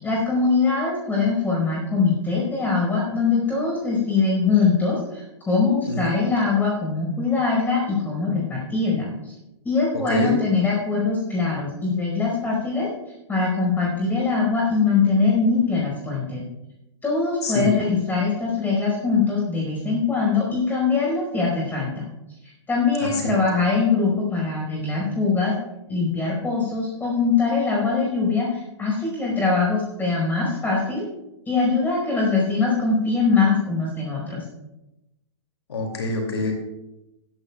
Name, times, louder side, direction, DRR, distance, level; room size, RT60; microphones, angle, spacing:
voice 1, 0.0-9.3 9.6-12.9 13.3-16.4 17.0-22.1 22.4-25.5 25.9-31.0 31.5-34.4, left 4 dB, 10° left, -2 dB, 4.9 m, -22 dB
voice 2, 9.9-10.3 17.4-17.7 23.0-23.4 35.7-36.5, left 2 dB, 70° left, 2 dB, 2.6 m, -26 dB
16.0 x 13.5 x 2.4 m, 0.94 s
figure-of-eight pair, 110°, 15 cm